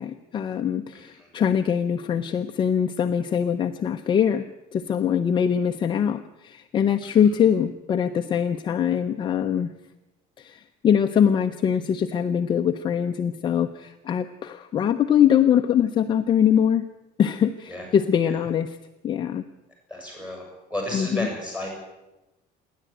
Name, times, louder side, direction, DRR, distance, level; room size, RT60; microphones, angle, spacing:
voice 1, 0.0-9.7 10.4-16.9 17.2-18.8 19.0-19.4 20.9-21.3, left 8 dB, 25° left, 6 dB, 0.7 m, -23 dB
voice 2, 19.9-20.4 20.7-21.7, left 1 dB, 5° right, 1 dB, 7.9 m, -31 dB
28.5 x 11.5 x 9.1 m, 0.99 s
cardioid pair, 175°, 18 cm